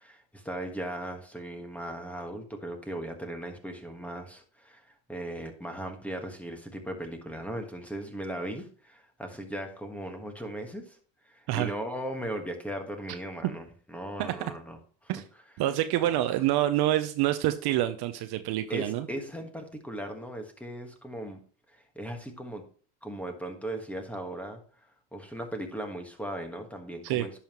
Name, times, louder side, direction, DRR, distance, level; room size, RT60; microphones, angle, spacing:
voice 1, 0.0-11.0 11.2-15.1 16.1-16.2 18.7-21.4 21.7-22.6 23.0-24.6 25.1-27.4, right 1 dB, 5° left, 4 dB, 1.4 m, -38 dB
voice 2, 15.6-19.1 27.0-27.3, right 14 dB, 55° right, 10 dB, 0.7 m, -27 dB
10.5 x 5.7 x 3.0 m, 0.43 s
supercardioid pair, 110°, 48 cm